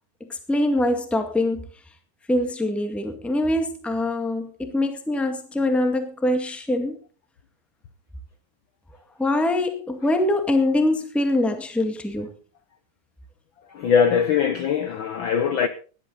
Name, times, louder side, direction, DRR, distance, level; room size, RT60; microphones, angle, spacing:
voice 1, 0.3-1.7 2.3-7.0 9.2-12.3, left 1 dB, ahead, 1.3 m, -23 dB
voice 2, 13.7-15.7, left 7 dB, 75° left, 1.1 m, -21 dB
17.5 x 11.5 x 4.0 m
omnidirectional pair, 3.4 m